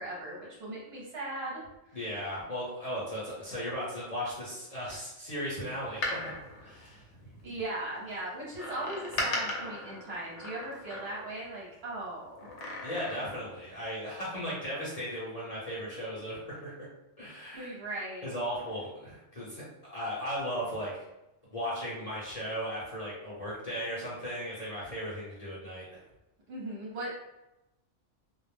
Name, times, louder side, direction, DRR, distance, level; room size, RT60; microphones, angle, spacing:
voice 1, 0.0-2.0 7.4-12.7 17.5-18.3 26.5-27.1, right 1 dB, 60° right, -5 dB, 0.9 m, -38 dB
voice 2, 1.9-7.0 12.8-16.8 17.2-17.8 18.2-20.9 21.5-26.0, equal, 35° left, -8 dB, 0.8 m, -36 dB
Door, 5.8-7.6 8.6-11.4 12.4-13.5 13.8-13.9, left 2 dB, 70° left, 0.9 m, -37 dB
2.3 x 2.0 x 3.2 m, 0.93 s
omnidirectional pair, 1.3 m